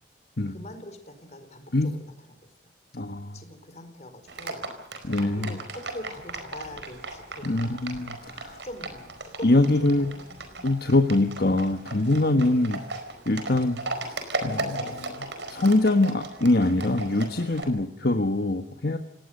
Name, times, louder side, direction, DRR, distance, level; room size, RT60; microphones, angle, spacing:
voice 1, 0.5-2.1 3.3-4.7 5.4-10.6 12.4-12.7 17.8-18.1, left 1 dB, 40° left, 7 dB, 4.5 m, -44 dB
voice 2, 2.9-3.4 5.0-5.6 7.4-8.6 9.4-10.1 10.6-12.8 13.3-19.0, left 2 dB, 60° left, 6 dB, 1.3 m, -24 dB
Livestock farm animals working animals, 4.3-17.6, right 2 dB, 85° right, 4.7 m, -37 dB
28.5 x 18.5 x 6.6 m, 0.70 s
head